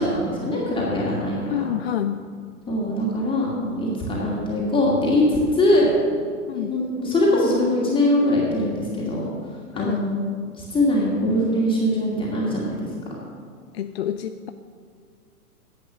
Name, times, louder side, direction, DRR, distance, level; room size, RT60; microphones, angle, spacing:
voice 1, 0.0-1.6 2.7-5.9 6.6-9.3 9.8-10.2 10.7-12.9, left 1 dB, 10° left, -5 dB, 2.3 m, -22 dB
voice 2, 1.5-2.2 6.5-6.8 9.7-10.2 13.7-14.5, left 10 dB, 45° left, 8 dB, 0.4 m, -28 dB
11.0 x 8.2 x 6.3 m, 2.1 s
figure-of-eight pair, 115°, 46 cm